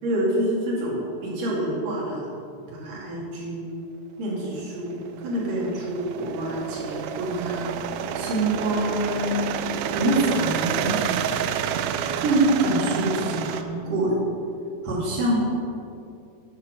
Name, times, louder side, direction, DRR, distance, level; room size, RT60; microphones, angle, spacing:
voice 1, 0.0-2.2 2.7-3.7 4.2-7.7 8.2-9.3 9.9-11.0 12.2-14.2 14.8-15.5, right 1 dB, 60° right, -5 dB, 3.9 m, -26 dB
sound 1, 4.6-13.6, right 8 dB, 85° right, 2.5 m, -29 dB
10.5 x 7.1 x 6.4 m, 2.5 s
omnidirectional pair, 4.4 m